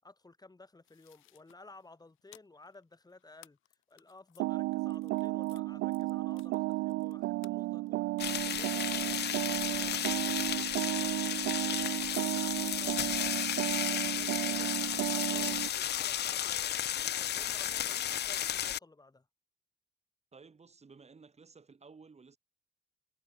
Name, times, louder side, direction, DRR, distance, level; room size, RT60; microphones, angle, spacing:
voice 1, 0.0-3.6 3.9-8.1 8.4-19.3, left 2 dB, 20° left, 7.8 m, -56 dB
sound 1, 0.8-5.6 5.9-16.3, left 16 dB, 90° left, 2.6 m, -63 dB
sound 2, 4.4-15.7, right 20 dB, 90° right, 0.4 m, -33 dB
sound 3, 8.2-18.8, left 11 dB, 55° left, 0.7 m, -33 dB
voice 2, 20.3-22.4, right 4 dB, 35° right, 6.8 m, -55 dB
cardioid pair, 90°, 20 cm